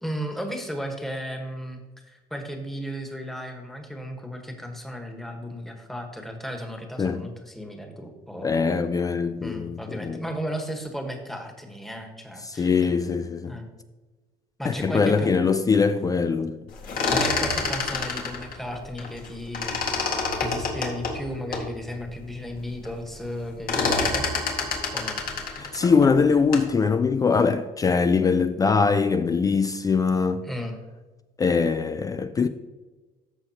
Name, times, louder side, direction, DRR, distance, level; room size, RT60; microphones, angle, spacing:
voice 1, 0.0-1.8 2.1-8.7 9.4-12.9 13.5-13.7 14.6-15.3 17.1-24.3 24.9-25.2 30.4-30.8, equal, ahead, 1.3 m, -35 dB
voice 2, 8.4-10.2 12.4-13.5 14.6-16.6 25.6-30.4 31.4-32.5, left 5 dB, 25° left, 0.3 m, -22 dB
sound 1, 16.7-19.3 19.5-21.7 22.2-22.3 22.5-23.0 23.2-26.8, left 4 dB, 65° left, 1.7 m, -27 dB
14.0 x 5.6 x 2.9 m
cardioid pair, 125°, 16 cm